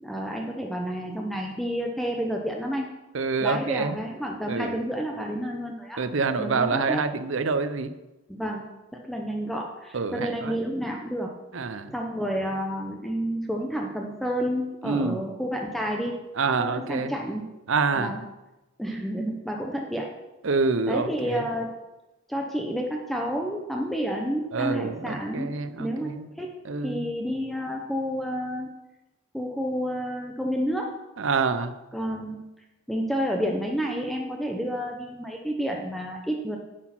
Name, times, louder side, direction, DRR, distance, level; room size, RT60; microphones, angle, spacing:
voice 1, 0.0-2.9 3.4-6.0 6.4-7.0 8.3-8.6 8.9-11.3 11.9-16.2 16.6-17.5 17.9-18.2 18.8-20.1 20.9-21.7 22.3-25.5 25.8-26.1 26.4-28.7 29.3-30.9 31.9-32.4 32.9-36.6, equal, ahead, 0 dB, 0.7 m, -30 dB
voice 2, 3.1-4.0 4.5-4.8 6.0-7.9 9.9-10.6 11.5-11.9 14.8-15.2 16.4-17.1 17.7-18.2 20.4-21.4 24.5-26.3 26.7-27.1 31.2-31.7, right 4 dB, 60° right, 10 dB, 0.6 m, -27 dB
9.9 x 6.2 x 5.9 m, 1.0 s
head